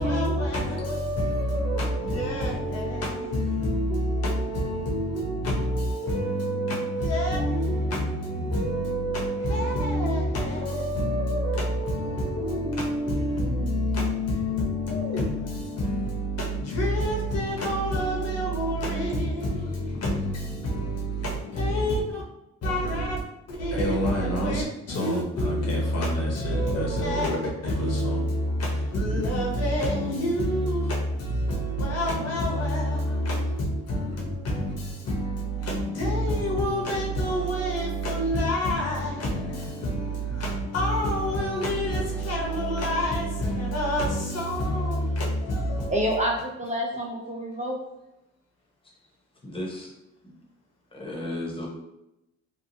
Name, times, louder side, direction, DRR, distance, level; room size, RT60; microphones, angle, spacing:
voice 1, 0.0-22.2 22.6-23.2 23.5-46.3, equal, 55° left, -2 dB, 0.9 m, -27 dB
voice 2, 45.9-47.8, equal, 25° right, -2 dB, 0.6 m, -28 dB
voice 3, 49.4-49.9 50.2-50.3 50.9-51.7, left 1 dB, 15° left, -2 dB, 0.9 m, -34 dB
2.9 x 2.3 x 2.7 m, 0.88 s
cardioid pair, 90°, 30 cm